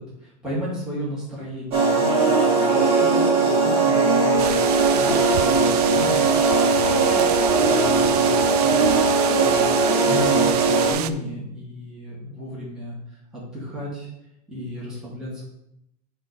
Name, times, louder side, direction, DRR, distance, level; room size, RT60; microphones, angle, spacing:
voice 1, 0.0-7.3 7.6-8.3 8.7-9.7 10.1-14.1 14.5-15.5, equal, 5° right, -9 dB, 2.6 m, -34 dB
sound 1, 1.7-10.9, right 3 dB, 30° right, 2.4 m, -19 dB
sound 2, 4.4-11.1, right 12 dB, 80° right, 0.5 m, -29 dB
8.0 x 3.4 x 5.4 m, 0.80 s
supercardioid pair, 145°, 20 cm